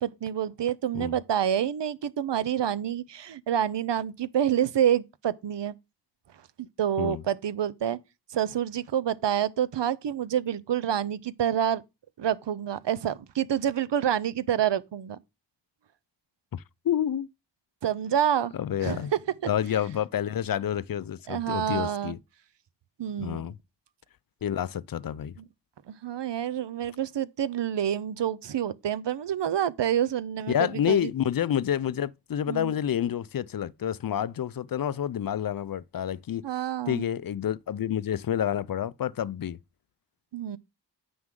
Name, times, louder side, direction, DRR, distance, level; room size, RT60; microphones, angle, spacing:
voice 1, 0.0-5.8 6.6-8.0 8.3-11.8 12.2-15.2 17.8-18.5 18.8-19.0 21.3-22.1 23.0-23.4 25.9-31.1 32.5-32.7 36.4-37.1 40.3-40.6, right 9 dB, 70° right, 0.7 m, -28 dB
voice 2, 16.5-17.3 18.5-19.1 19.5-22.2 23.2-23.6 24.4-25.4 30.5-36.4 36.9-39.6, left 10 dB, 50° left, 0.5 m, -29 dB
9.5 x 6.1 x 3.7 m
wide cardioid pair, 65°, 44 cm